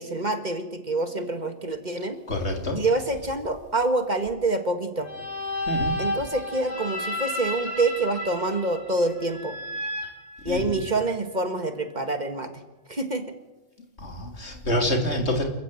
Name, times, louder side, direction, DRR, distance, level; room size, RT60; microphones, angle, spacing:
voice 1, 0.0-2.2 2.8-5.1 6.0-9.6 10.4-12.6 12.9-13.3, right 2 dB, 40° right, 7 dB, 1.9 m, -26 dB
voice 2, 2.3-2.8 5.7-5.9 10.5-10.8 14.0-15.4, left 1 dB, 75° left, 2 dB, 3.6 m, -27 dB
sound 1, 5.0-11.0, left 1 dB, 65° right, 5.1 m, -32 dB
27.5 x 14.5 x 8.0 m, 1.1 s
omnidirectional pair, 1.2 m